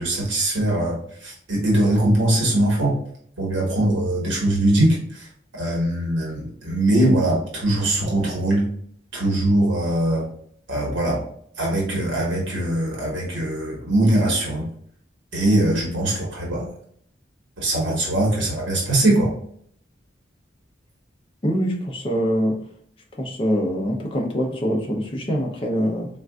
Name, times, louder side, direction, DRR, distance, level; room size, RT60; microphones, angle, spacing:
voice 1, 0.0-2.9 3.4-5.3 5.6-8.6 9.1-10.2 10.7-11.2 11.6-14.7 15.3-16.7 17.6-19.3, right 1 dB, 75° right, -3 dB, 1.1 m, -21 dB
voice 2, 21.4-22.6 23.1-26.1, equal, 25° left, 0 dB, 0.5 m, -24 dB
3.8 x 2.4 x 2.2 m, 0.64 s
head